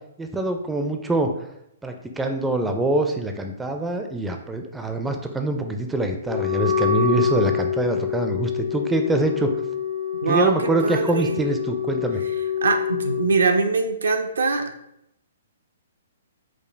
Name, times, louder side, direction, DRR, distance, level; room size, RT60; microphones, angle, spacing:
voice 1, 0.2-1.3 1.8-9.5 10.3-12.2, right 2 dB, 10° right, 5 dB, 0.4 m, -24 dB
Wind instrument woodwind instrument, 6.2-13.3, left 7 dB, 75° left, 0.6 m, -26 dB
voice 2, 10.2-11.4 12.6-14.7, right 4 dB, 75° right, 5 dB, 0.5 m, -22 dB
4.9 x 2.1 x 3.2 m, 0.80 s
hypercardioid pair, 125°, 0 cm